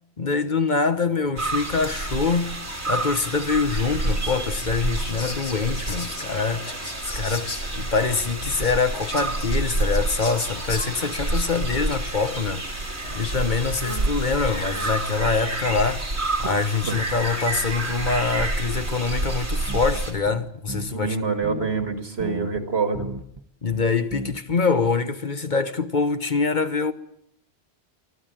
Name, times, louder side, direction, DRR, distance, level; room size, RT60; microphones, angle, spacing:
voice 1, 0.2-2.6 2.9-12.9 13.1-21.2 23.6-26.9, left 4 dB, 45° left, 1.2 m, -25 dB
sound 1, 1.4-20.1, right 2 dB, 85° right, 3.6 m, -28 dB
Whispering, 3.8-15.2, left 3 dB, 85° left, 2.5 m, -40 dB
sound 2, 19.7-21.1 21.4-22.6 22.9-23.4 23.7-24.6 24.8-24.9, right 2 dB, 25° right, 1.1 m, -35 dB
voice 2, 20.9-23.1, right 4 dB, 70° right, 2.7 m, -26 dB
24.5 x 14.5 x 9.0 m
omnidirectional pair, 1.1 m